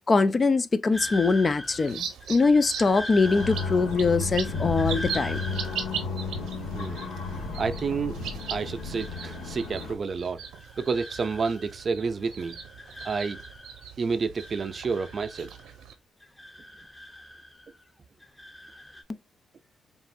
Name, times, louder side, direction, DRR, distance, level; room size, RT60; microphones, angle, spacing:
voice 1, 0.0-5.4, left 4 dB, 35° left, 0.5 m, -23 dB
sound 1, 0.9-7.9 8.2-9.9 10.2-12.0 12.2-13.9 14.2-15.9 16.2-17.9 18.2-19.0, left 1 dB, 15° left, 0.8 m, -42 dB
sound 2, 1.6-15.9, right 8 dB, 80° right, 1.0 m, -40 dB
sound 3, 3.2-10.0, left 4 dB, 85° left, 1.7 m, -33 dB
voice 2, 6.7-7.2 7.6-8.2 8.5-10.4 10.8-12.6 13.0-13.4 14.0-15.6, right 5 dB, 40° right, 0.5 m, -29 dB
5.3 x 2.5 x 2.6 m
cardioid pair, 90°, 0 cm